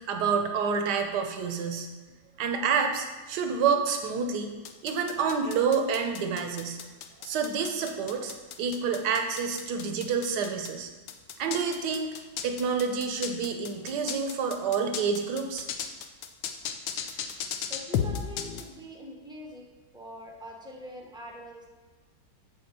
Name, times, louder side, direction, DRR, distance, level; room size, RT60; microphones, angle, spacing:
voice 1, 0.1-1.9 2.4-4.5 4.8-6.8 7.2-10.9 11.4-12.1 12.4-15.7, right 6 dB, 70° right, 5 dB, 1.4 m, -28 dB
sound 1, 4.6-10.7 11.1-18.6, left 9 dB, 85° left, 1.4 m, -34 dB
voice 2, 17.7-21.7, equal, 5° right, -1 dB, 0.7 m, -43 dB
7.9 x 4.4 x 6.8 m, 1.3 s
omnidirectional pair, 2.0 m